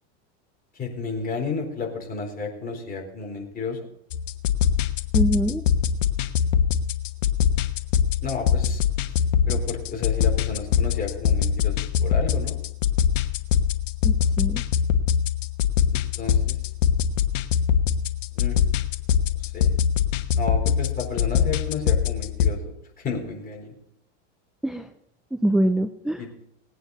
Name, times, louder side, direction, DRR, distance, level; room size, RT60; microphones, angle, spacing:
voice 1, 0.7-3.8 8.2-8.8 9.5-12.6 16.2-16.6 18.3-18.6 19.4-19.7 20.3-23.7 26.2-26.4, left 4 dB, 25° left, 0 dB, 4.2 m, -32 dB
sound 1, 4.1-22.5, left 8 dB, 90° left, 1.2 m, -23 dB
voice 2, 5.1-5.7 14.0-14.6 24.6-24.9 25.3-26.2, right 1 dB, ahead, 8 dB, 0.4 m, -24 dB
19.5 x 9.2 x 4.1 m, 0.78 s
supercardioid pair, 130°, 36 cm